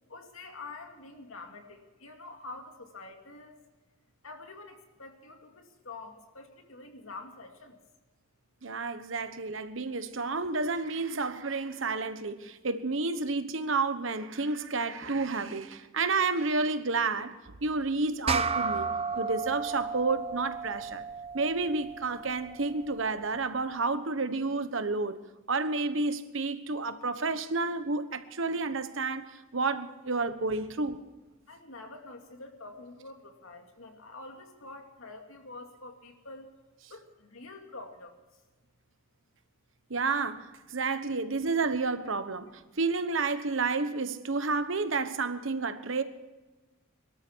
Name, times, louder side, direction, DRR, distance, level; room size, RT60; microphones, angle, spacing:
voice 1, 0.1-3.6 4.2-7.8 31.4-36.5 36.9-38.2 42.7-42.8, left 3 dB, 80° left, 2.5 m, -46 dB
voice 2, 8.6-17.3 17.6-18.9 19.1-21.0 21.3-25.2 25.5-29.2 29.5-31.0 39.9-46.0, right 3 dB, 65° right, 1.2 m, -30 dB
sound 1, 18.3-23.0, right 5 dB, 30° right, 0.8 m, -34 dB
23.5 x 13.0 x 4.7 m
head